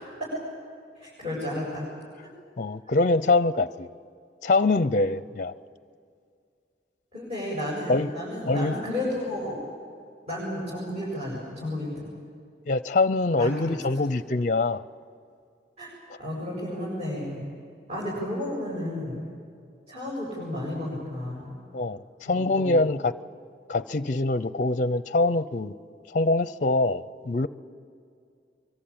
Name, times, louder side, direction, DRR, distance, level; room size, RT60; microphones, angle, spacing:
voice 1, 1.0-1.9 7.1-9.6 10.3-12.1 13.4-14.0 15.8-15.9 16.2-17.5 17.9-19.3 19.9-21.5 22.3-22.9, left 1 dB, 35° right, -6 dB, 7.7 m, -32 dB
voice 2, 2.6-3.9 4.4-5.5 7.9-8.1 8.5-8.8 12.7-14.8 21.7-23.1 23.7-25.7 26.1-27.5, left 2 dB, 45° left, 16 dB, 0.5 m, -24 dB
24.5 x 24.0 x 8.7 m, 2.3 s
head